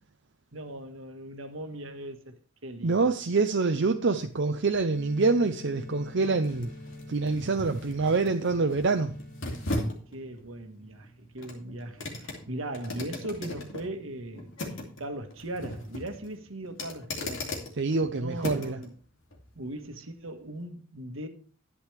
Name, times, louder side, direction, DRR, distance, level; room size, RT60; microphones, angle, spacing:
voice 1, 0.5-2.3 2.6-3.2 10.1-17.5 18.1-19.0 19.5-21.3, right 1 dB, 80° right, 1.5 m, -39 dB
voice 2, 2.8-6.7 7.1-9.1 17.8-18.8, right 3 dB, 60° right, 0.6 m, -26 dB
sound 1, 4.2-18.9 19.3-19.4, left 1 dB, 70° left, 2.6 m, -39 dB
sound 2, 4.9-9.9, left 1 dB, 5° right, 4.3 m, -45 dB
11.0 x 10.0 x 3.4 m
head